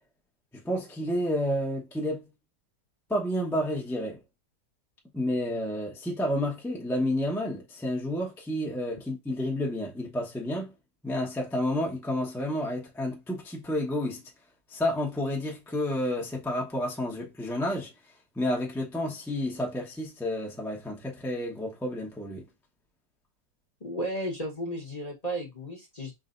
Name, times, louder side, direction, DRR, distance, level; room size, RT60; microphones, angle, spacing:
voice 1, 0.5-2.3 3.1-4.2 5.1-10.7 11.0-14.2 14.7-17.9 18.4-22.4, left 1 dB, ahead, 0.5 m, -30 dB
voice 2, 23.8-26.1, right 1 dB, 30° left, 0.8 m, -34 dB
4.9 x 3.2 x 2.5 m
omnidirectional pair, 2.0 m